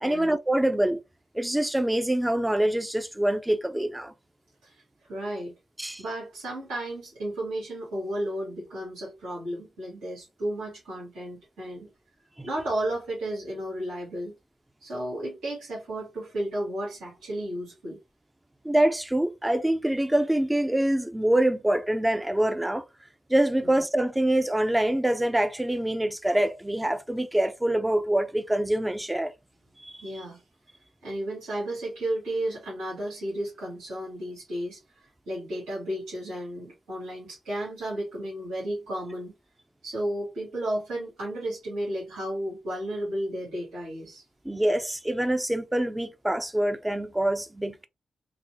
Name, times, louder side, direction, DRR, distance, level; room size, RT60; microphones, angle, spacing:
voice 1, 0.0-1.0 1.3-4.1 5.8-6.0 12.4-12.5 18.6-22.8 23.3-29.3 29.8-30.0 44.4-47.9, right 1 dB, 10° right, 0.5 m, -25 dB
voice 2, 4.6-5.5 6.0-11.9 12.4-14.3 14.8-18.0 30.0-30.4 31.0-39.3 39.8-44.2, right 1 dB, 90° right, 1.7 m, -33 dB
4.0 x 2.0 x 2.8 m
supercardioid pair, 45°, 0 cm